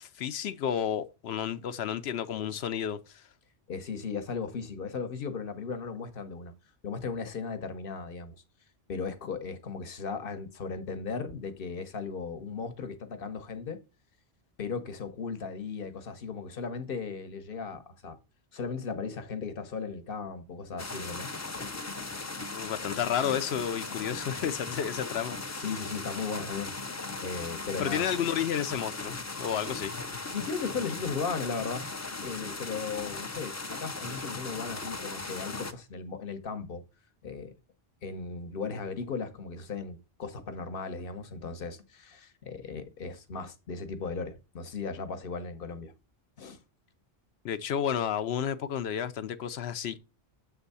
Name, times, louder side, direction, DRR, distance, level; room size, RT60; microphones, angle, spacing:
voice 1, 0.0-3.2 22.5-25.6 27.8-30.1 47.4-50.0, left 9 dB, 85° left, 0.9 m, -31 dB
voice 2, 3.7-6.5 6.8-8.4 8.9-13.8 14.6-18.2 18.5-21.8 25.5-26.7 27.2-28.1 30.3-31.8 32.2-36.8 37.2-37.5 38.0-45.9 46.4-46.6, left 5 dB, 60° left, 1.1 m, -36 dB
sound 1, 20.8-35.7, left 3 dB, 30° left, 0.3 m, -38 dB
7.5 x 3.5 x 5.4 m
omnidirectional pair, 1.1 m